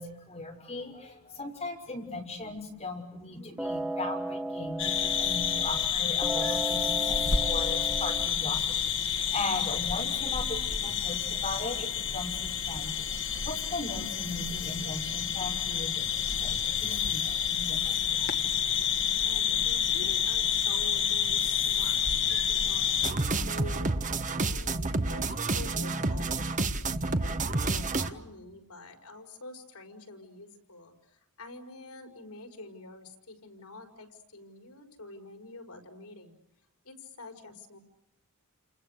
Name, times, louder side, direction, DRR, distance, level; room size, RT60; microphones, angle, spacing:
voice 1, 0.0-18.3, left 2 dB, 30° left, 1 dB, 6.2 m, -38 dB
sound 1, 3.6-5.9 6.2-8.3, right 1 dB, 5° right, 1.2 m, -35 dB
sound 2, 4.8-23.1, left 8 dB, 60° left, 1.9 m, -29 dB
voice 2, 19.1-26.5 27.0-36.3 36.8-37.8, left 2 dB, 80° left, 4 dB, 5.4 m, -47 dB
sound 3, 23.0-28.1, right 3 dB, 35° right, 1.3 m, -29 dB
29.5 x 29.0 x 6.7 m, 0.84 s
head